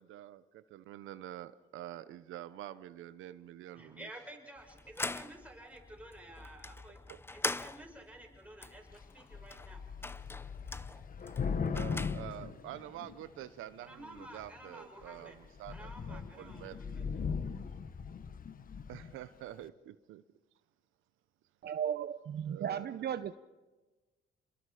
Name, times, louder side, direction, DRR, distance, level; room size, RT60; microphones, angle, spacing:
voice 1, 0.0-4.1 7.1-7.2 11.5-16.8 18.9-20.2 22.4-23.1, right 13 dB, 90° right, 0.8 m, -47 dB
voice 2, 3.7-7.0 7.3-9.8 10.2-10.3 13.8-15.4 15.7-17.2, right 1 dB, 5° right, 6.1 m, -52 dB
sound 1, 4.6-12.6, left 2 dB, 10° left, 0.6 m, -43 dB
Thunder / Rain, 8.9-9.1 9.3-13.4 14.2-14.6 15.0-15.2 15.4-19.2, left 5 dB, 45° left, 1.2 m, -39 dB
voice 3, 21.6-23.4, right 9 dB, 55° right, 0.8 m, -35 dB
29.0 x 21.5 x 5.0 m
cardioid pair, 90°, 20 cm